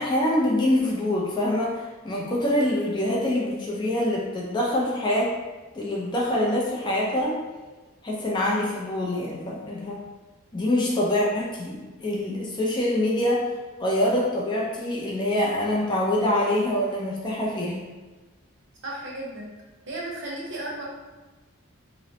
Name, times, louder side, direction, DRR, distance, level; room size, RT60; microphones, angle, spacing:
voice 1, 0.0-5.3 5.7-7.4 8.0-10.0 10.5-13.4 13.8-17.9, left 1 dB, 20° left, -4 dB, 0.3 m, -25 dB
voice 2, 18.8-19.5 19.9-20.8, right 1 dB, 60° right, -4 dB, 0.7 m, -34 dB
2.9 x 2.0 x 2.7 m, 1.2 s
head